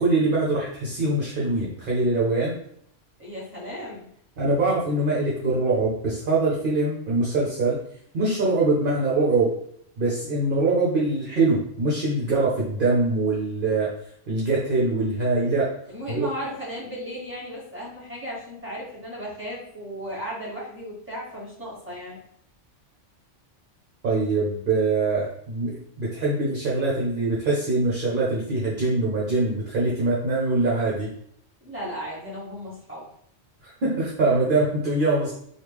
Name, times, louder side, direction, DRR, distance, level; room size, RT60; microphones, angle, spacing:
voice 1, 0.0-2.6 4.4-7.8 8.1-9.5 10.0-13.9 14.3-15.7 16.1-16.3 24.0-31.1 33.6-35.3, right 2 dB, 50° right, -5 dB, 0.8 m, -23 dB
voice 2, 3.2-4.1 15.9-22.2 31.6-33.1, equal, 10° right, -5 dB, 1.3 m, -35 dB
3.1 x 2.4 x 3.4 m, 0.67 s
omnidirectional pair, 1.3 m